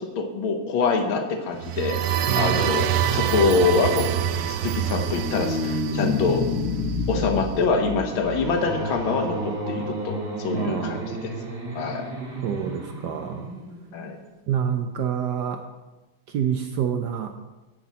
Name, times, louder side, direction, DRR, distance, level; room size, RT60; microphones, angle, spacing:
voice 1, 0.2-2.0 2.4-4.2 4.5-6.4 7.1-11.3 11.8-12.1 13.9-14.2, left 4 dB, 75° left, 4 dB, 1.9 m, -25 dB
sound 1, 1.5-7.3, right 9 dB, 85° right, 0.8 m, -26 dB
voice 2, 2.2-3.3 10.5-11.2 12.4-13.5 14.5-15.6 16.3-17.3, right 8 dB, 70° right, 5 dB, 1.1 m, -28 dB
sound 2, 4.5-9.0, left 4 dB, 45° left, 0.9 m, -29 dB
sound 3, 7.3-14.3, right 1 dB, 45° right, 1.9 m, -33 dB
15.5 x 5.9 x 4.2 m, 1.1 s
omnidirectional pair, 2.3 m